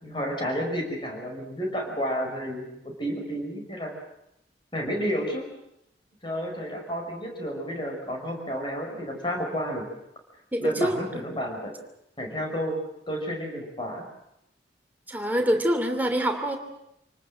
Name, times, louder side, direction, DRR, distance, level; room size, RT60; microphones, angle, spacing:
voice 1, 0.0-3.9 4.7-5.5 6.2-9.9 10.6-11.7 12.2-12.8 13.1-14.0, equal, 25° left, 1 dB, 5.8 m, -31 dB
voice 2, 10.5-11.0 15.1-16.6, equal, 10° right, 4 dB, 2.9 m, -25 dB
28.0 x 19.0 x 7.8 m, 0.80 s
head